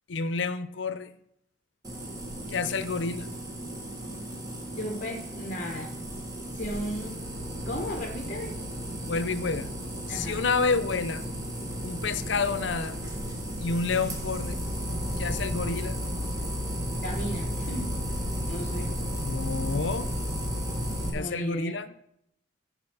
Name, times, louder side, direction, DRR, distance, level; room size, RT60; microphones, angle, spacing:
voice 1, 0.1-1.1 2.5-3.3 9.1-9.7 10.1-11.2 11.8-13.0 13.6-14.6 15.2-16.0 19.2-20.1 21.1-21.9, left 4 dB, 70° left, 14 dB, 0.6 m, -29 dB
sound 1, 1.8-21.1, equal, 20° right, 1.5 m, -34 dB
voice 2, 4.8-5.9 6.6-7.2 7.7-8.5 10.1-10.4 17.0-17.9 18.5-18.9 21.1-21.8, equal, 40° left, 2 dB, 1.0 m, -35 dB
15.0 x 5.2 x 4.8 m, 0.76 s
head